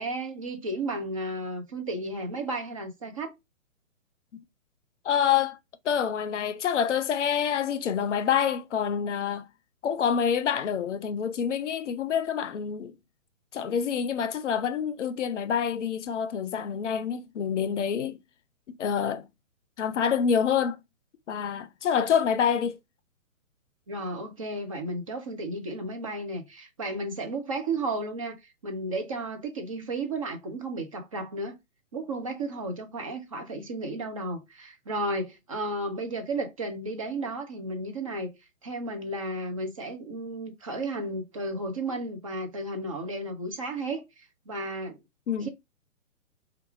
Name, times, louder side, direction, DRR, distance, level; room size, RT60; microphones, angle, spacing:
voice 1, 0.0-3.3 23.9-31.6 31.9-38.3 38.6-45.0 45.4-45.5, right 2 dB, 25° right, 0.4 m, -33 dB
voice 2, 5.0-5.6 5.8-9.5 9.8-13.0 13.5-18.2 18.7-19.3 19.8-20.8 21.3-22.8 45.3-45.5, left 7 dB, 60° left, 0.6 m, -27 dB
4.5 x 2.4 x 3.0 m
figure-of-eight pair, 130°, 41 cm